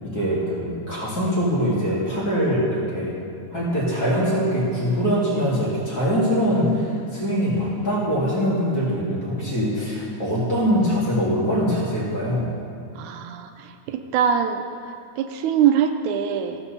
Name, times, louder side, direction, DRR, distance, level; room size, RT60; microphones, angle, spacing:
voice 1, 0.0-3.1 3.5-12.5, equal, 30° left, -7 dB, 2.9 m, -23 dB
voice 2, 13.0-16.6, right 8 dB, 85° right, 6 dB, 2.0 m, -23 dB
15.0 x 7.0 x 7.0 m, 2.5 s
omnidirectional pair, 3.5 m